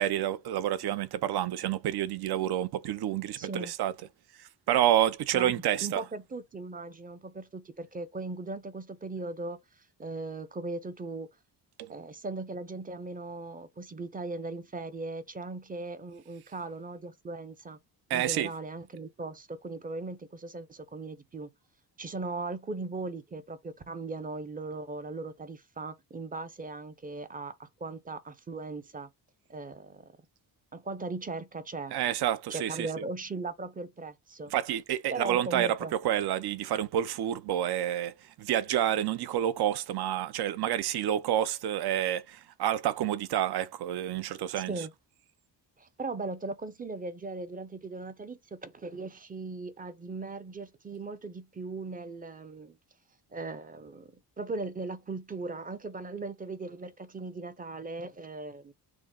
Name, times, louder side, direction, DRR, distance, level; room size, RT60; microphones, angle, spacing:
voice 1, 0.0-3.9 4.7-6.0 11.8-11.9 18.1-18.5 31.9-32.9 34.5-35.8 36.0-44.7, right 11 dB, 65° right, 0.6 m, -29 dB
voice 2, 3.4-3.7 5.3-5.5 5.8-9.6 10.0-11.3 11.9-17.8 18.1-21.5 22.0-29.1 29.5-30.1 30.7-31.9 32.5-34.5 35.1-35.9 44.5-44.9 45.8-52.8 53.3-58.7, right 3 dB, 20° right, 0.5 m, -38 dB
6.0 x 2.0 x 3.7 m
cardioid pair, 110°, 41 cm